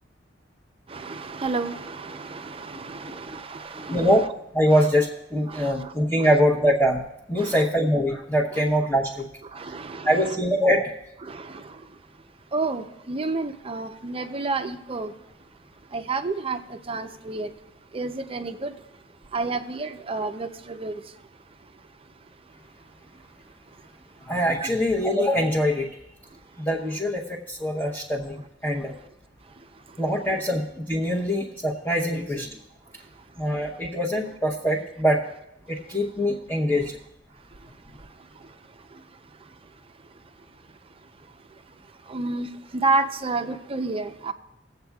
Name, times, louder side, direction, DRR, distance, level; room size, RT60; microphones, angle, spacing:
voice 1, 0.9-4.1 4.7-4.9 5.5-5.9 6.2-6.3 7.4-7.6 8.5-8.6 9.5-10.4 11.2-11.8 12.5-15.1 15.9-17.5 17.9-18.7 19.3-21.0 24.6-24.7 42.1-44.3, right 3 dB, 30° right, 0.6 m, -30 dB
voice 2, 3.9-4.3 4.5-7.0 7.3-9.3 10.0-10.9 24.2-25.9 26.6-28.9 30.0-32.6 33.4-35.2 35.7-37.0, equal, 10° left, 0.9 m, -23 dB
20.5 x 8.0 x 2.3 m
head